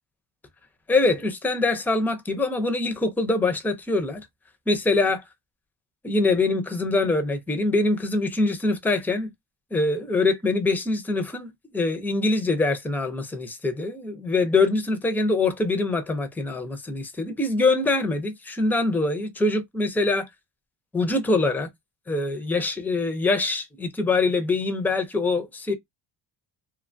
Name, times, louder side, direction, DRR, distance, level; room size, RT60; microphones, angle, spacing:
voice 1, 0.9-4.3 4.7-5.2 6.0-9.3 9.7-20.3 20.9-21.7 22.1-25.7, left 3 dB, 5° left, 0.4 m, -24 dB
2.9 x 2.2 x 2.5 m
cardioid pair, 135°, 44 cm